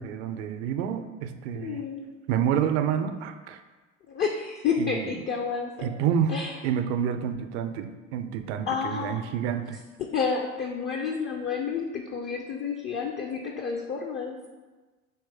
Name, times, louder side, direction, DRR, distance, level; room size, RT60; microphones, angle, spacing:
voice 1, 0.0-1.8 2.3-3.6 4.8-5.2 5.8-6.3 6.6-9.8, right 8 dB, 60° right, 8 dB, 0.5 m, -28 dB
voice 2, 1.5-2.1 4.1-5.9 6.3-6.5 8.7-9.2 10.1-14.4, left 5 dB, 30° left, 2 dB, 0.4 m, -30 dB
4.7 x 3.1 x 3.4 m, 1.3 s
figure-of-eight pair, 65°, 39 cm